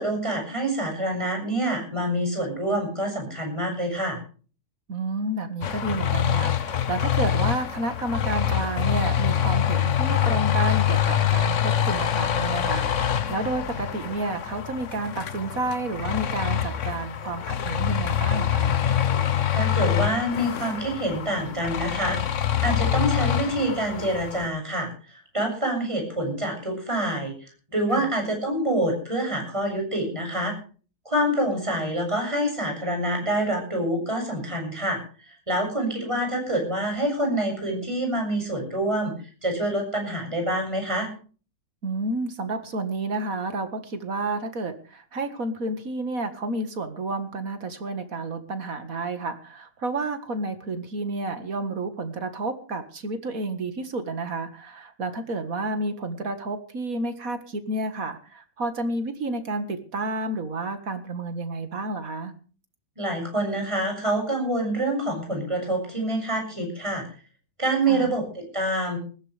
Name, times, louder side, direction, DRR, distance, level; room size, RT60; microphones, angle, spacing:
voice 1, 0.0-4.2 19.5-27.3 27.7-30.6 31.1-35.0 35.3-39.1 39.4-41.1 63.0-67.0 67.6-69.0, right 1 dB, 15° right, 1 dB, 7.2 m, -26 dB
voice 2, 4.9-18.7 27.9-28.1 41.8-62.3 67.9-68.1, right 2 dB, 55° right, 9 dB, 2.1 m, -30 dB
sound 1, 5.6-24.5, left 9 dB, 50° left, 1.2 m, -25 dB
20.0 x 15.5 x 3.4 m, 0.38 s
omnidirectional pair, 1.8 m